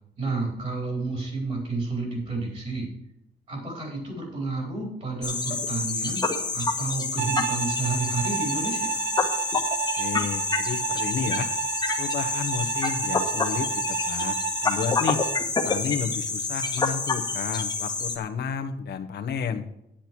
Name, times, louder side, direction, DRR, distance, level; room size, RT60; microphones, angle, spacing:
voice 1, 0.2-2.9 3.5-6.2 6.5-9.0, right 3 dB, 40° right, -1 dB, 4.2 m, -30 dB
sound 1, 5.2-18.2, left 4 dB, 20° left, 1.4 m, -28 dB
Bowed string instrument, 7.2-15.5, right 12 dB, 75° right, 0.5 m, -31 dB
voice 2, 9.9-11.5 12.0-14.4 14.6-15.3 15.6-19.6, left 7 dB, 65° left, 6 dB, 1.3 m, -31 dB
10.5 x 10.0 x 4.6 m, 0.81 s
wide cardioid pair, 180°, 18 cm